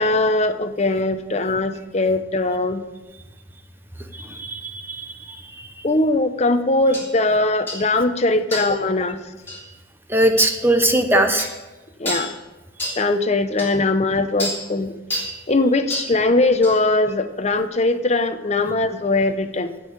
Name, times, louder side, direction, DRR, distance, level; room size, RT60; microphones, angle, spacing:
voice 1, 0.0-2.8 5.8-9.2 11.1-11.2 12.0-12.3 13.0-15.0 15.5-19.7, left 2 dB, 35° left, 9 dB, 0.7 m, -20 dB
voice 2, 4.1-5.8 10.1-11.5, right 1 dB, 10° right, 6 dB, 0.8 m, -21 dB
sound 1, 6.9-7.1 7.7-7.9 8.5-8.8 9.5-9.6 10.4-10.6 11.4-11.6 12.0-12.3 12.8-13.0 13.6-13.7 14.4-14.6 15.1-15.3 15.9-16.1 16.6-16.8, equal, 10° left, 3.2 m, -28 dB
15.5 x 5.5 x 8.0 m, 1.2 s
head